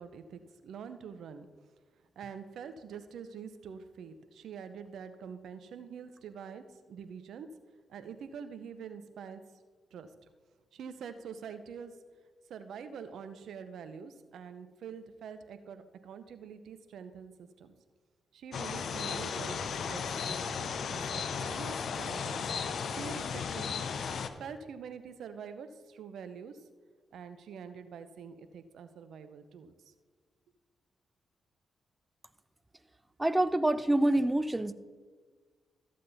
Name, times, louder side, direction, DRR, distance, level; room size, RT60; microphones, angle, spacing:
voice 1, 0.0-1.5 2.2-7.5 7.9-9.4 9.9-10.1 10.7-12.0 12.5-17.7 18.3-19.6 19.9-23.9 24.4-26.6 27.1-29.9, right 6 dB, 70° right, 10 dB, 0.8 m, -45 dB
sound 1, 18.5-24.3, left 6 dB, 65° left, 0.8 m, -35 dB
voice 2, 33.2-34.7, right 1 dB, 20° right, 14 dB, 0.7 m, -26 dB
14.0 x 7.4 x 4.1 m, 1.5 s
hypercardioid pair, 40°, 0 cm